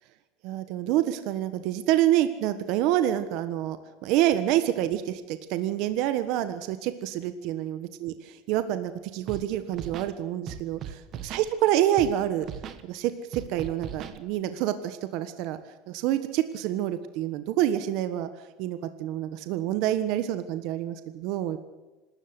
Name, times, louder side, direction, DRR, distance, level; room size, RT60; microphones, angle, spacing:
voice 1, 0.4-12.5 12.8-15.6 15.9-18.3 18.6-21.6, right 12 dB, 55° right, 11 dB, 1.3 m, -27 dB
Scratching (performance technique), 9.3-9.4 9.7-10.1 10.5-11.5 12.0-12.1 12.4-12.8 13.3-14.2, right 9 dB, 35° right, 1.4 m, -38 dB
26.0 x 13.0 x 8.2 m, 1.1 s
cardioid pair, 155°, 0 cm